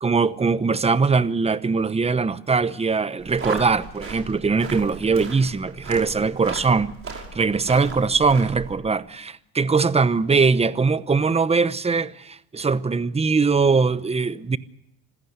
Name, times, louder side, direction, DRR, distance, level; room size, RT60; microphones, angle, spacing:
voice 1, 0.0-14.6, right 4 dB, 15° right, 0.8 m, -21 dB
sound 1, 3.2-8.7, right 4 dB, 35° right, 5.8 m, -37 dB
26.5 x 16.0 x 8.0 m
cardioid pair, 110°, 39 cm